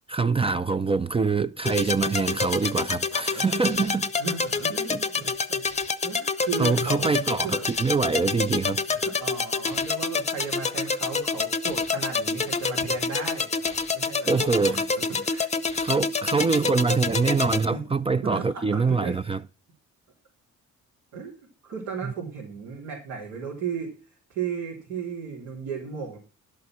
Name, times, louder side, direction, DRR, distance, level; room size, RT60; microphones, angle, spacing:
voice 1, 0.1-4.1 4.9-5.0 6.6-8.8 14.2-15.0 15.7-19.4 22.0-22.1, right 4 dB, 20° right, 0.4 m, -25 dB
sound 1, 1.7-17.7, left 4 dB, 25° left, 0.7 m, -27 dB
voice 2, 4.2-5.6 6.0-7.1 7.4-7.6 8.9-15.5 17.7-17.8 18.2-19.2 21.1-21.3 21.6-23.9 24.3-26.2, right 5 dB, 90° right, 3.6 m, -35 dB
11.0 x 6.6 x 6.2 m
cardioid pair, 90°, 30 cm